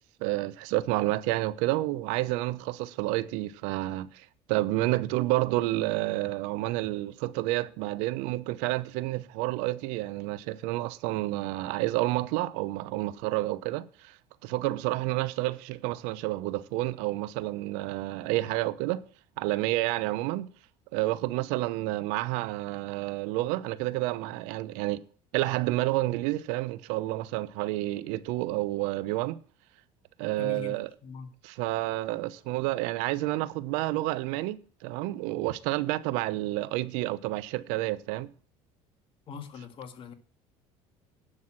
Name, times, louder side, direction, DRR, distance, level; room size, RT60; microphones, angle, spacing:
voice 1, 0.2-14.2 14.4-19.0 19.4-20.5 20.9-25.0 25.3-29.4 30.2-30.9 31.4-38.3, right 18 dB, 80° right, 0.7 m, -29 dB
voice 2, 30.4-30.8 31.0-31.3 39.3-40.1, left 5 dB, 50° left, 1.8 m, -41 dB
9.8 x 6.2 x 7.4 m
supercardioid pair, 100°, 12 cm